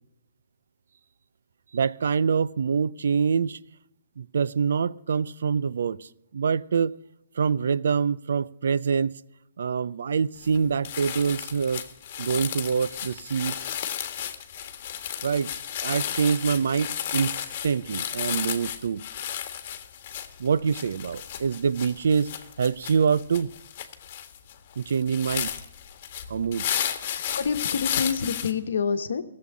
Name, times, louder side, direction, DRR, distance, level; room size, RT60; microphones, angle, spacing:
voice 1, 1.7-3.6 4.2-7.0 7.4-9.1 9.6-11.8 12.2-13.6 15.2-15.5 15.8-17.3 17.6-19.0 20.4-22.3 22.6-23.5 24.8-25.5 26.3-26.7, right 6 dB, 70° right, 0.5 m, -25 dB
sound 1, 10.4-10.6 10.8-28.5, left 10 dB, 45° left, 1.6 m, -33 dB
voice 2, 27.1-29.2, left 6 dB, 70° left, 1.1 m, -27 dB
15.5 x 7.7 x 9.8 m
hypercardioid pair, 150°, 0 cm